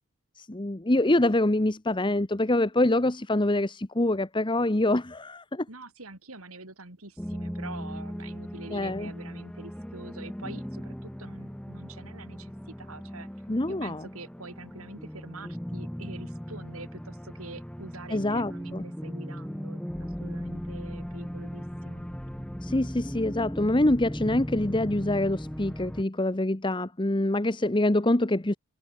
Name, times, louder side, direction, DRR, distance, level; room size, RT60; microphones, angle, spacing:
voice 1, 0.4-5.7 8.7-9.1 13.5-14.0 18.1-18.8 22.6-28.6, left 1 dB, 20° left, 1.0 m, -25 dB
voice 2, 5.7-13.3 13.7-22.0, right 3 dB, 80° right, 4.8 m, -45 dB
sound 1, 7.2-26.0, equal, 5° left, 1.0 m, -38 dB
head